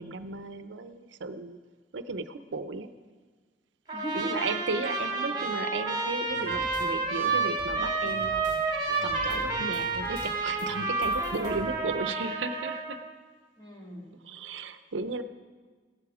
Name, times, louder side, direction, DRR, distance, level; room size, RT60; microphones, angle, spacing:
voice 1, 0.0-1.6 1.9-2.9 4.1-13.0 14.2-15.2, right 3 dB, 90° right, 11 dB, 0.7 m, -35 dB
voice 2, 3.9-4.5 5.2-5.4 13.6-14.1 15.0-15.2, right 1 dB, 25° left, -3 dB, 3.1 m, -39 dB
Trumpet, 3.9-13.0, right 3 dB, 25° right, 2.3 m, -30 dB
sound 1, 6.3-6.8 7.2-8.6 8.9-10.3 10.6-11.7, equal, 40° left, 2.7 m, -44 dB
16.5 x 12.0 x 4.9 m, 1.5 s
head